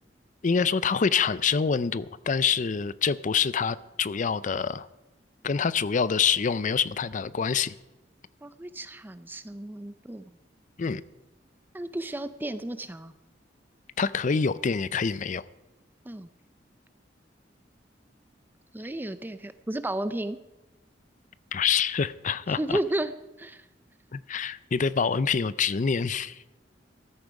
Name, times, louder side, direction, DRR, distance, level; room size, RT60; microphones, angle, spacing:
voice 1, 0.4-4.9 5.4-7.8 10.8-11.0 14.0-15.4 21.5-22.8 24.1-26.4, left 6 dB, 45° left, 0.5 m, -26 dB
voice 2, 8.4-10.3 11.7-13.1 16.1-16.3 18.7-20.4 22.5-23.7, right 1 dB, 10° right, 0.5 m, -33 dB
14.0 x 13.0 x 4.8 m
head